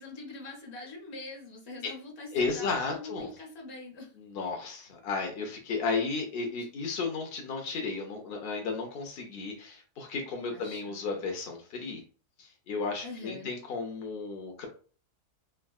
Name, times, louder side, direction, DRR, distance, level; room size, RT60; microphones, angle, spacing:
voice 1, 0.0-4.1 10.5-11.0 13.0-13.5, left 2 dB, 50° left, -1 dB, 1.1 m, -43 dB
voice 2, 2.3-3.3 4.2-12.0 12.4-14.7, left 4 dB, 65° left, 2 dB, 0.6 m, -34 dB
3.6 x 2.2 x 2.3 m, 0.40 s
omnidirectional pair, 1.6 m